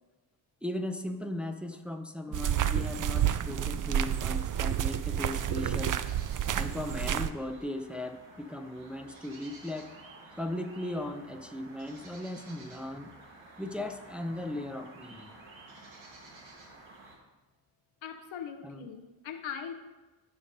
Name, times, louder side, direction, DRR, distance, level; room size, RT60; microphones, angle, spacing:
voice 1, 0.6-6.0 6.5-9.9 10.4-13.1 13.6-15.3 18.6-18.9, left 1 dB, ahead, 5 dB, 0.6 m, -37 dB
sound 1, 2.3-7.3, right 10 dB, 45° right, 0.4 m, -30 dB
sound 2, 6.0-17.2, right 2 dB, 75° right, 1.4 m, -52 dB
voice 2, 18.0-19.7, left 8 dB, 75° left, 7 dB, 0.8 m, -40 dB
13.5 x 5.1 x 2.6 m, 1.2 s
cardioid pair, 55°, 47 cm